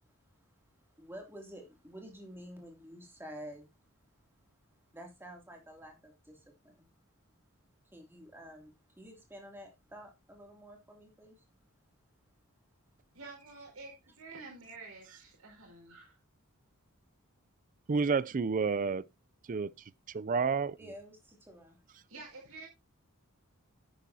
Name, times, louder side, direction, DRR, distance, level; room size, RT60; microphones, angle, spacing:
voice 1, 1.0-3.7 4.9-6.9 7.9-11.4 20.8-21.8, equal, 10° right, 2.7 m, -50 dB
voice 2, 13.1-16.2 22.1-22.7, right 3 dB, 80° right, 4.9 m, -49 dB
voice 3, 17.9-19.0 19.5-19.7 20.1-20.7, right 5 dB, 40° right, 0.4 m, -29 dB
10.0 x 10.0 x 2.8 m
head